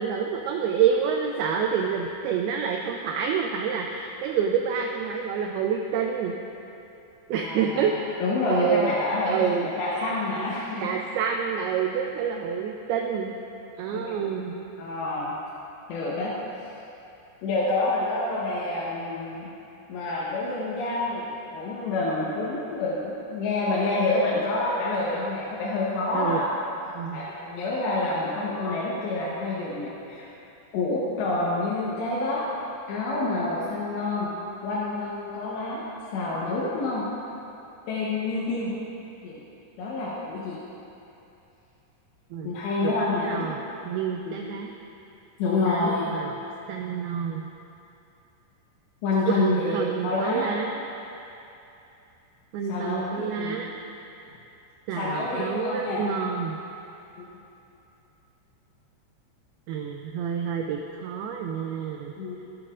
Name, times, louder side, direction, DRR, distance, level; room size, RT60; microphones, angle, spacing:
voice 1, 0.0-6.3 7.3-7.9 8.5-8.9 9.3-10.5 10.8-13.3 13.8-14.6 26.1-26.4 26.9-27.3 42.3-42.5 42.8-43.0 43.2-43.6 43.9-44.7 45.7-47.5 49.3-50.8 52.5-53.7 54.9-56.6 59.7-62.1, right 7 dB, 85° right, 2 dB, 2.2 m, -28 dB
voice 2, 7.3-10.9 13.9-14.3 14.8-15.3 15.9-16.3 17.4-19.5 19.9-26.5 27.1-30.3 30.7-32.5 32.9-34.3 34.6-35.9 36.1-37.1 37.9-38.7 39.2-39.4 39.8-40.6 42.4-43.5 44.3-44.4 45.4-46.2 49.0-50.5 52.7-53.6 55.0-56.1 57.2-57.3 62.2-62.5, left 2 dB, 80° left, -7 dB, 3.2 m, -28 dB
15.0 x 8.7 x 2.5 m, 2.8 s
omnidirectional pair, 5.0 m